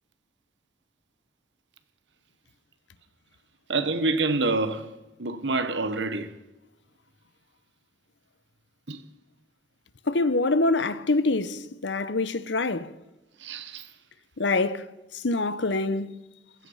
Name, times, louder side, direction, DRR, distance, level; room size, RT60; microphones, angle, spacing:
voice 1, 3.7-4.9 5.2-6.3 8.9-9.0 13.4-13.9, right 3 dB, 80° right, 1.3 m, -27 dB
voice 2, 10.1-12.9 14.4-14.8 15.2-16.2, left 3 dB, 80° left, 0.9 m, -25 dB
15.5 x 14.5 x 5.7 m
head